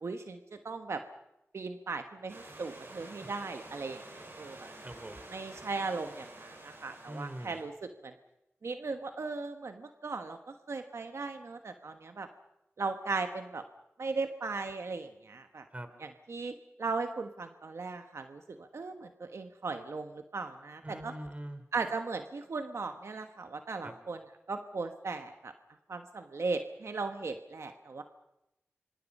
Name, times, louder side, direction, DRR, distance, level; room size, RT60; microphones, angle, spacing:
voice 1, 0.0-1.0 1.5-4.0 4.4-4.6 5.3-8.1 8.6-10.4 10.7-12.3 12.8-13.6 14.0-15.6 16.0-16.5 16.8-21.1 21.7-24.2 24.5-25.5 25.9-28.0, right 4 dB, 85° right, 6 dB, 1.2 m, -37 dB
Stream / Liquid, 2.3-7.6, right 2 dB, 65° right, 8.0 m, -49 dB
voice 2, 4.8-5.2 7.1-7.6 15.7-15.9 20.8-21.6 23.8-24.0, right 1 dB, 30° right, 9 dB, 3.5 m, -42 dB
26.5 x 24.5 x 5.4 m, 0.89 s
cardioid pair, 50°, 5 cm